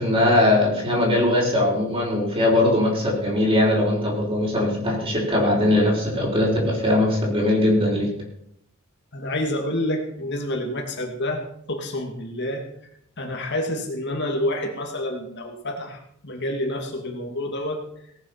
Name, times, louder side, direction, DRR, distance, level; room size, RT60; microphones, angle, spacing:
voice 1, 0.0-8.1, left 1 dB, 25° right, -1 dB, 5.3 m, -20 dB
voice 2, 9.1-11.4 11.7-12.7 13.2-17.8, left 1 dB, 55° left, 2 dB, 2.5 m, -28 dB
18.0 x 9.4 x 5.9 m, 0.68 s
head